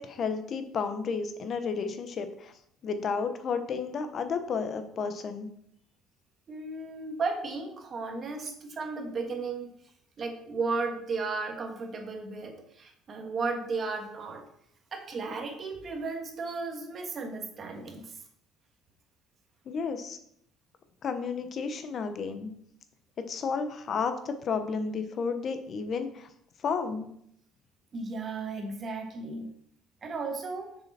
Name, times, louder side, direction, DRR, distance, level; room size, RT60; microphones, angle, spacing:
voice 1, 0.0-2.5 2.8-5.5 19.7-20.2 21.0-22.5 23.3-26.3 26.6-27.1, left 5 dB, 40° left, 8 dB, 1.0 m, -32 dB
voice 2, 6.5-9.7 10.2-14.4 14.9-18.1 27.9-29.5 30.0-30.7, right 4 dB, 35° right, 3 dB, 1.6 m, -34 dB
6.8 x 6.7 x 4.3 m, 0.70 s
cardioid pair, 135°, 0 cm